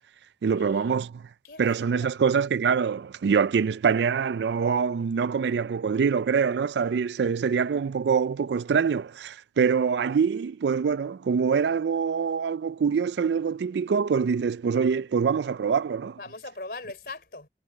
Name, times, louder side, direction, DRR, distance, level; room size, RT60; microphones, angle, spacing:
voice 1, 0.4-1.3 1.6-16.2, right 6 dB, 80° right, 0.4 m, -25 dB
voice 2, 1.4-2.1 16.2-17.5, left 3 dB, 55° left, 3.8 m, -40 dB
head